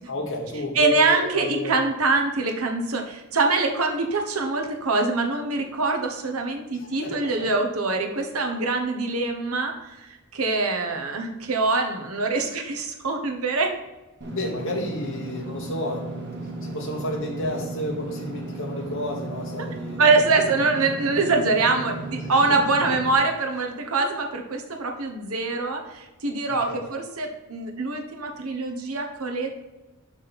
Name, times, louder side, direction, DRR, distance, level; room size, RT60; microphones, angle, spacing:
voice 1, 0.0-1.9 6.7-7.5 14.3-20.1 22.2-22.5 26.5-26.9, left 1 dB, 65° left, -3 dB, 1.3 m, -32 dB
voice 2, 0.7-13.7 20.0-29.5, right 3 dB, 85° right, 3 dB, 1.3 m, -24 dB
Engine / Mechanisms, 14.2-23.1, right 2 dB, 55° right, 1.8 m, -35 dB
6.3 x 6.1 x 4.3 m, 1.1 s
head